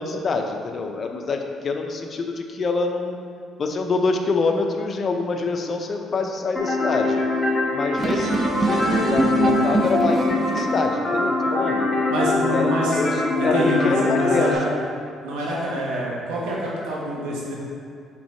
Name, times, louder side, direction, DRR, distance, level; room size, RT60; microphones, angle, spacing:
voice 1, 0.0-3.2 3.6-7.2 7.7-11.9 12.5-14.6, left 3 dB, 45° left, 4 dB, 0.6 m, -26 dB
sound 1, 6.6-14.6, left 2 dB, 20° left, 1.3 m, -23 dB
sound 2, 8.0-10.9, right 3 dB, 40° right, 0.5 m, -24 dB
voice 2, 12.1-14.7 15.2-17.5, equal, 90° right, -4 dB, 1.3 m, -26 dB
5.9 x 3.7 x 4.4 m, 2.5 s
cardioid pair, 90°, 0 cm